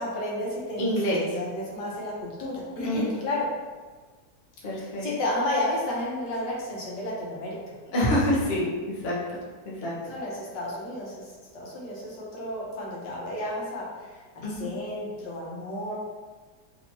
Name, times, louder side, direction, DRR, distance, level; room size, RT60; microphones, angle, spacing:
voice 1, 0.0-3.5 4.7-7.6 10.1-15.9, left 1 dB, 75° left, -5 dB, 1.4 m, -32 dB
voice 2, 0.8-1.2 2.8-3.0 4.6-5.0 7.9-9.4 9.6-9.9 14.4-14.7, left 1 dB, 50° left, -6 dB, 0.8 m, -26 dB
3.4 x 2.9 x 2.7 m, 1.4 s
omnidirectional pair, 1.9 m